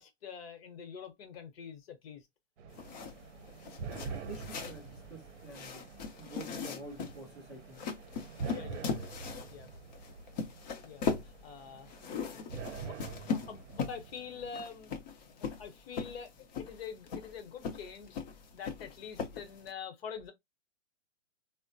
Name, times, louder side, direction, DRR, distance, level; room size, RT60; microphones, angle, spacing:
voice 1, 0.0-2.3 8.5-8.9 9.5-9.7 10.8-11.1 11.4-11.9 12.2-12.3 12.8-13.0 13.3-14.9 15.2-16.3 16.6-18.2 18.5-20.3, left 7 dB, 50° left, 1.0 m, -45 dB
sound 1, 2.6-14.5, right 5 dB, 65° right, 0.7 m, -46 dB
sound 2, 2.7-19.7, left 5 dB, 35° left, 0.7 m, -40 dB
voice 2, 4.3-5.8 6.2-7.8, right 2 dB, ahead, 0.3 m, -48 dB
3.5 x 2.1 x 2.6 m
hypercardioid pair, 140°, 37 cm